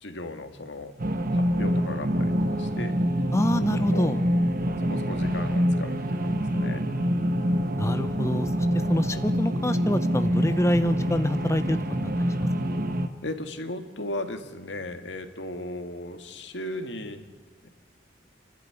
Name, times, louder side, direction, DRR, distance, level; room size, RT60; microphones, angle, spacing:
voice 1, 0.0-0.9 1.3-2.9 3.7-4.1 4.8-6.9 13.2-17.2 17.6-17.7, left 1 dB, 80° left, 7 dB, 1.9 m, -36 dB
sound 1, 1.0-13.1, equal, 55° right, 1.5 m, -26 dB
voice 2, 3.3-4.2 7.8-11.8 12.4-12.8, left 1 dB, 15° left, 9 dB, 0.8 m, -26 dB
30.0 x 12.0 x 9.9 m, 1.5 s
head